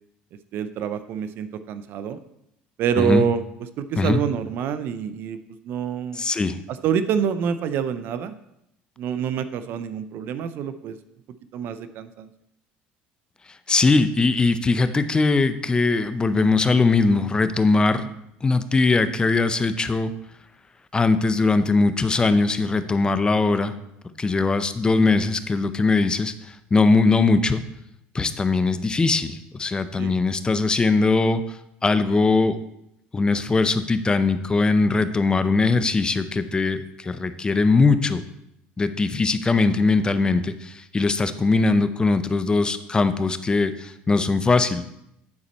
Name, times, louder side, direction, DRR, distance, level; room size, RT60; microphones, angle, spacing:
voice 1, 0.5-2.2 2.8-3.4 3.8-6.3 6.7-8.4 9.0-11.0 11.5-12.3 30.0-30.1, right 8 dB, 60° right, 12 dB, 0.4 m, -26 dB
voice 2, 6.1-6.6 13.7-18.1 18.4-20.1 20.9-23.7 24.2-27.6 28.1-32.6 33.1-38.2 38.8-44.8, left 3 dB, 20° left, 12 dB, 0.5 m, -21 dB
9.6 x 4.2 x 4.1 m, 0.80 s
supercardioid pair, 100°, 4 cm